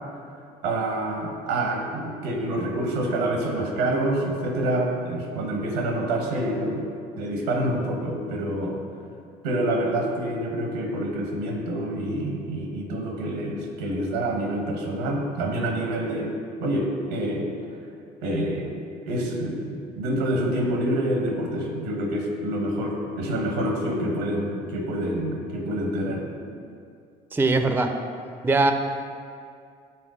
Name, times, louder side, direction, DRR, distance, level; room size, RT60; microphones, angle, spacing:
voice 1, 0.6-6.8 7.2-8.7 9.4-16.3 16.6-17.5 18.2-18.8 19.0-26.3, right 1 dB, 90° right, 1 dB, 0.9 m, -27 dB
voice 2, 27.3-27.9 28.4-28.7, right 3 dB, 10° right, 6 dB, 0.5 m, -20 dB
5.9 x 3.5 x 4.8 m, 2.3 s
hypercardioid pair, 60°, 19 cm